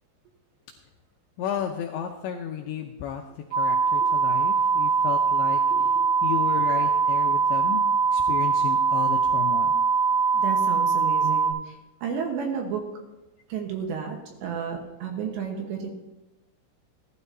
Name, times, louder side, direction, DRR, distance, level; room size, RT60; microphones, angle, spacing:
voice 1, 1.4-3.2 3.6-5.6 6.2-7.8 8.1-9.7, left 8 dB, 80° left, 2 dB, 2.6 m, -33 dB
sound 1, 3.5-11.5, right 5 dB, 90° right, 6.4 m, -22 dB
voice 2, 5.7-6.0 10.3-11.8 12.0-13.0 13.5-15.9, right 6 dB, 70° right, 2 dB, 3.0 m, -32 dB
17.0 x 12.5 x 2.7 m, 1.0 s
omnidirectional pair, 5.9 m